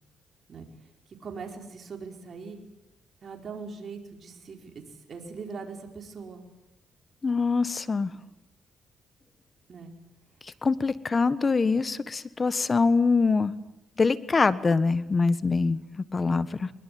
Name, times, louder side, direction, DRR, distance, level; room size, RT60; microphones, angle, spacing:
voice 1, 1.2-2.6 3.2-4.8 5.1-6.4 9.7-9.9, right 5 dB, 50° right, 3 dB, 4.7 m, -40 dB
voice 2, 7.2-8.1 10.6-13.5 14.0-16.7, left 4 dB, 30° left, 14 dB, 1.4 m, -24 dB
23.0 x 21.0 x 9.5 m, 0.91 s
cardioid pair, 90°, 0 cm